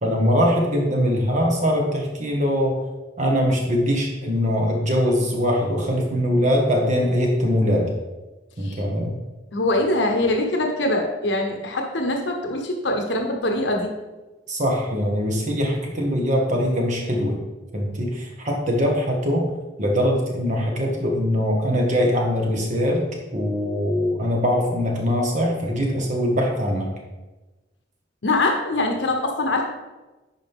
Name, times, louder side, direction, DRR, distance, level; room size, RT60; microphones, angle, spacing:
voice 1, 0.0-2.8 3.2-7.9 8.6-9.2 14.5-17.4 17.7-19.5 19.8-23.0 23.3-26.9, equal, 45° right, 0 dB, 1.6 m, -22 dB
voice 2, 8.6-9.1 9.5-13.9 28.2-29.6, left 2 dB, 80° left, 3 dB, 1.0 m, -23 dB
10.5 x 5.0 x 3.7 m, 1.1 s
head